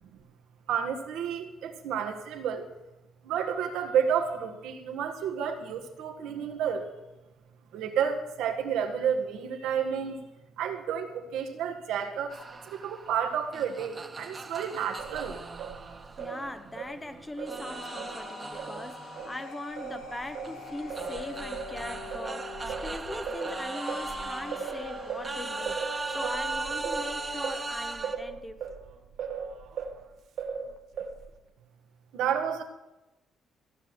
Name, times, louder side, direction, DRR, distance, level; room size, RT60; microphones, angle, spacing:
voice 1, 0.7-2.6 3.3-6.8 7.7-10.2 10.6-12.3 12.8-15.3 32.1-32.6, right 8 dB, 90° right, 4 dB, 1.6 m, -30 dB
sound 1, 12.3-17.0 17.5-28.2, right 3 dB, 25° right, 1.3 m, -39 dB
Singing, 15.0-19.3 19.8-30.0 30.4-31.4, right 6 dB, 70° right, 1.3 m, -39 dB
voice 2, 16.2-28.6, left 1 dB, 15° left, 10 dB, 1.0 m, -41 dB
sound 2, 17.3-27.7, left 3 dB, 80° left, 2.5 m, -42 dB
15.0 x 6.1 x 7.9 m, 1.0 s
cardioid pair, 90°, 0 cm